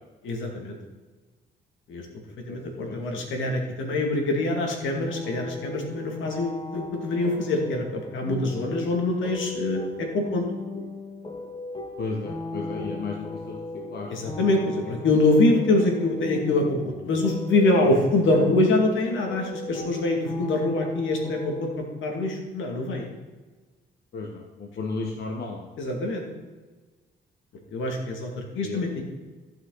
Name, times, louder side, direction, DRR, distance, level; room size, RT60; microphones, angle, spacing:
voice 1, 0.2-0.8 1.9-2.1 2.5-10.4 14.1-21.7 22.0-23.1 25.8-26.2 27.7-29.0, left 2 dB, 75° left, 2 dB, 2.3 m, -24 dB
voice 2, 2.9-3.2 12.0-13.6 13.9-14.3 24.1-25.7 28.6-28.8, left 3 dB, 55° left, 0 dB, 1.4 m, -34 dB
sound 1, 5.1-21.7, left 2 dB, 25° left, 1.8 m, -37 dB
14.5 x 5.9 x 4.1 m, 1.3 s
cardioid pair, 90°, 20 cm